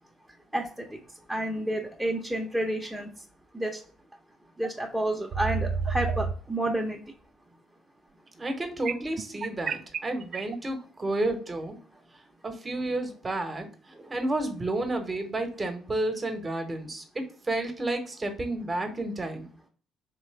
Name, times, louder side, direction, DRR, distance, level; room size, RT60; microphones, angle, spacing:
voice 1, 0.5-1.0 1.3-3.1 3.5-3.8 4.6-7.0, right 1 dB, 10° right, -1 dB, 0.8 m, -30 dB
sound 1, 4.6-4.7 5.3-6.3 8.9-10.6, right 5 dB, 50° right, 0.3 m, -29 dB
voice 2, 8.4-11.8 12.4-19.5, right 2 dB, 30° right, 6 dB, 1.0 m, -31 dB
3.8 x 3.2 x 3.2 m, 0.44 s
hypercardioid pair, 50°, 0 cm